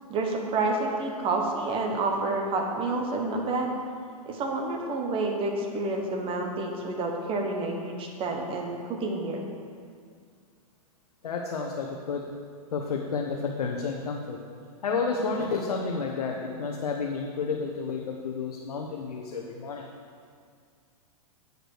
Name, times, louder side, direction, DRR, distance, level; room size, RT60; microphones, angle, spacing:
voice 1, 0.1-3.8 4.3-9.5, right 2 dB, 30° right, 1 dB, 1.3 m, -29 dB
voice 2, 11.2-12.3 12.7-14.4 14.8-19.9, left 4 dB, 80° left, 0 dB, 0.9 m, -31 dB
8.0 x 5.1 x 6.3 m, 2.2 s
hypercardioid pair, 125°, 19 cm